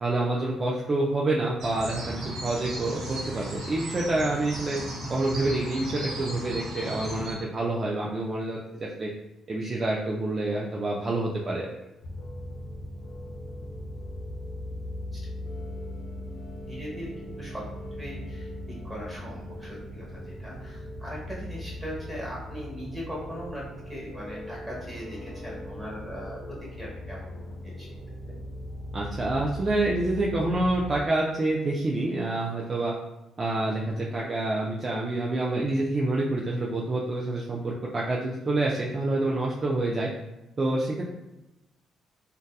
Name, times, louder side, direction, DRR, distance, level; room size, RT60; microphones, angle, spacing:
voice 1, 0.0-4.8 5.1-9.1 9.5-11.7 28.9-32.9 33.4-40.1 40.6-41.1, right 2 dB, 35° right, -3 dB, 0.3 m, -27 dB
sound 1, 1.6-7.3, right 1 dB, 75° right, 0.7 m, -35 dB
sound 2, 12.0-31.0, left 1 dB, 85° left, 0.7 m, -39 dB
voice 2, 16.7-17.6 18.0-18.5 18.8-27.4 27.6-27.9 28.3-28.4, equal, 15° right, -4 dB, 1.1 m, -39 dB
2.7 x 2.2 x 2.3 m, 1.0 s
cardioid pair, 90°, 0 cm